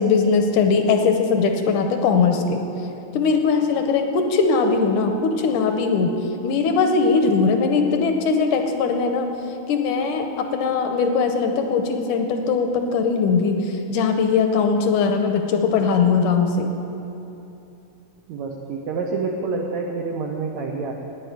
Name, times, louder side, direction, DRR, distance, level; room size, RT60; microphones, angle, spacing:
voice 1, 0.0-2.6 3.1-6.2 6.4-9.3 9.7-16.7, left 5 dB, 75° left, 5 dB, 2.0 m, -20 dB
voice 2, 18.3-20.9, right 4 dB, 80° right, 1 dB, 1.6 m, -27 dB
11.0 x 9.4 x 9.2 m, 2.9 s
omnidirectional pair, 4.3 m